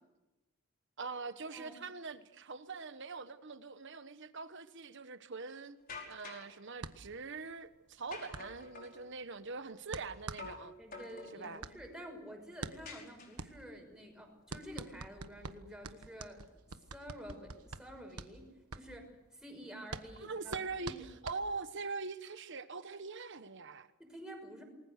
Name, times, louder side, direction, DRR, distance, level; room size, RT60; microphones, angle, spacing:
voice 1, 1.0-5.8 6.0-10.7 11.3-11.6 20.2-23.9, right 4 dB, 55° right, 1.2 m, -43 dB
sound 1, 5.9-6.5 8.1-9.0 10.4-10.7 10.9-11.6 12.8-13.6, left 4 dB, 40° left, 5.2 m, -48 dB
sound 2, 6.8-21.9, right 4 dB, 85° right, 1.3 m, -47 dB
voice 2, 10.8-16.6 16.9-21.1 24.0-24.6, equal, 5° right, 5.9 m, -50 dB
28.0 x 20.5 x 6.7 m
head